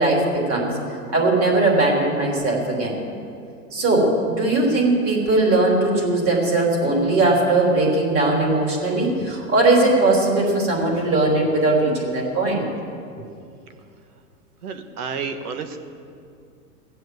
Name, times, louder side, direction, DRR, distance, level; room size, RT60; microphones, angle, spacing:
voice 1, 0.0-3.0 3.7-12.6, right 2 dB, 30° right, -1 dB, 3.5 m, -19 dB
voice 2, 14.6-15.8, right 5 dB, 75° right, 8 dB, 1.5 m, -30 dB
16.5 x 7.9 x 7.8 m, 2.4 s
hypercardioid pair, 130°, 46 cm